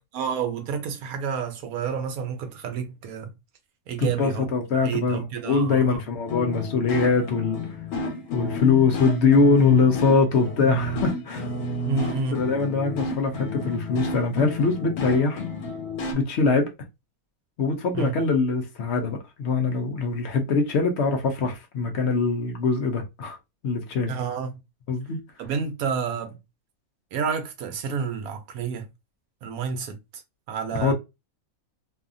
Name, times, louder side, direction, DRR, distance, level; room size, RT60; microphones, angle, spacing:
voice 1, 0.1-3.3 3.9-4.5 4.7-6.0 11.9-12.4 17.9-18.2 24.1-24.6 25.4-26.4 27.1-28.9 29.4-30.0 30.5-30.9, right 6 dB, 75° right, 1.1 m, -29 dB
voice 2, 4.0-7.6 8.3-11.5 12.3-15.4 16.1-16.7 17.6-23.4 23.6-24.1 24.9-25.2 30.8-30.9, left 4 dB, 65° left, 0.7 m, -23 dB
sound 1, 6.3-16.1, left 2 dB, 90° left, 1.3 m, -31 dB
2.7 x 2.3 x 2.5 m
omnidirectional pair, 1.6 m